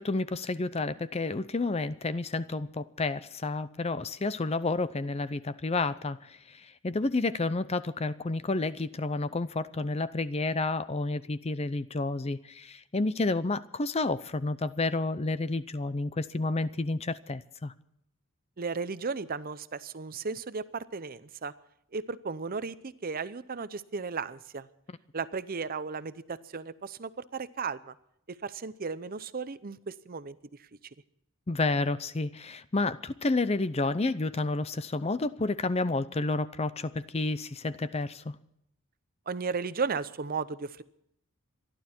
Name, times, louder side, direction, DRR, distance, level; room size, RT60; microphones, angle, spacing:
voice 1, 0.0-6.2 6.8-17.7 24.9-25.0 31.5-38.4, left 3 dB, 30° left, 0.6 m, -30 dB
voice 2, 18.6-21.5 21.9-24.7 25.1-27.8 28.4-30.3 39.3-40.8, right 5 dB, 40° right, 0.6 m, -35 dB
26.5 x 11.5 x 4.4 m
head